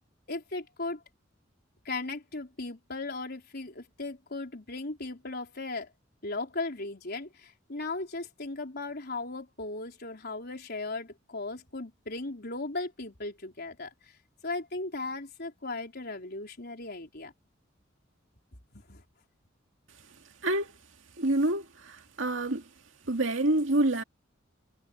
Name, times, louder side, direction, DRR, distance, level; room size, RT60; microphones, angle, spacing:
voice 1, 0.3-1.0 1.8-5.9 6.2-14.2 14.4-17.3 18.7-19.0, left 3 dB, 55° left, 4.2 m, -37 dB
voice 2, 21.2-22.6 23.1-24.0, right 1 dB, 75° right, 2.3 m, -27 dB
head